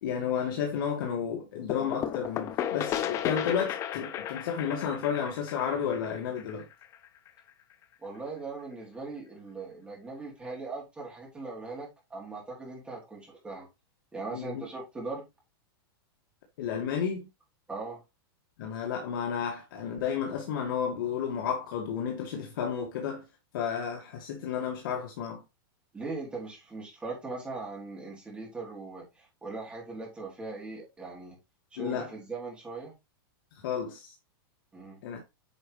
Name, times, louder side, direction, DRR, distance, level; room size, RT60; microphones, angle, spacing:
voice 1, 0.0-6.7 14.3-14.6 16.6-17.3 18.6-23.2 23.5-25.4 31.8-32.1 33.6-34.1 35.0-35.2, left 7 dB, 60° left, 2.1 m, -32 dB
sound 1, 1.7-7.3, left 10 dB, 25° left, 0.7 m, -34 dB
voice 2, 8.0-13.7 14.1-15.2 17.7-18.0 25.9-31.4 31.7-32.9 34.7-35.0, right 3 dB, 10° right, 3.5 m, -40 dB
9.3 x 5.2 x 3.3 m
supercardioid pair, 160°, 12 cm